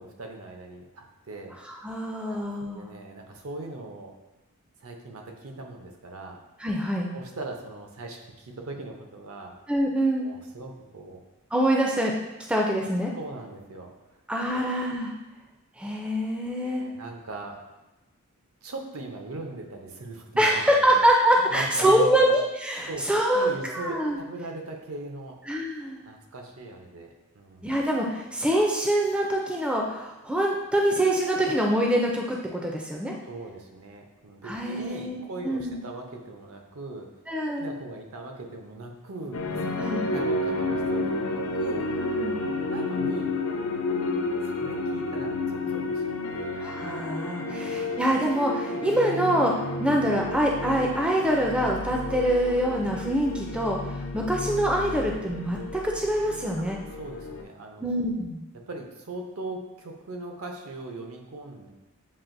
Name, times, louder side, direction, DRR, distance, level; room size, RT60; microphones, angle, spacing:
voice 1, 0.0-1.6 2.3-2.4 2.6-4.1 4.8-6.4 7.1-9.5 10.2-11.2 13.2-13.9 14.5-14.7 16.6-17.6 18.6-21.0 21.5-22.3 22.9-23.0 23.3-25.4 26.0-27.7 33.2-37.1 37.6-41.9 42.7-43.4 44.6-46.0 46.3-46.5 47.5-48.0 52.8-52.9 56.6-56.7 56.9-58.0 58.7-61.7, right 2 dB, 80° right, 2 dB, 0.7 m, -40 dB
voice 2, 1.8-2.9 6.6-7.1 9.7-10.3 11.5-12.1 12.5-13.1 14.3-15.1 15.8-16.8 20.4-24.2 25.5-26.0 27.6-33.1 34.4-35.8 37.3-37.7 39.8-40.1 42.2-42.4 46.6-53.8 54.1-56.8 57.8-58.4, right 1 dB, 5° right, -1 dB, 0.4 m, -25 dB
sound 1, 39.3-57.4, left 2 dB, 80° left, 0.5 m, -31 dB
7.4 x 2.5 x 2.6 m, 1.0 s
head